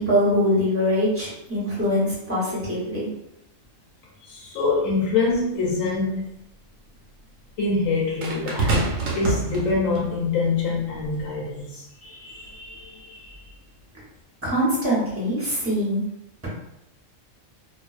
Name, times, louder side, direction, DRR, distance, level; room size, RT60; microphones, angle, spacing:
voice 1, 0.0-3.1 14.4-16.0, equal, 15° right, -7 dB, 0.7 m, -23 dB
voice 2, 4.3-6.3 7.6-13.4, left 3 dB, 80° left, -3 dB, 0.9 m, -25 dB
sound 1, 5.3-5.4 8.2-10.1 11.0-11.2, right 2 dB, 65° right, 0.8 m, -26 dB
2.3 x 2.3 x 2.3 m, 0.83 s
omnidirectional pair, 1.4 m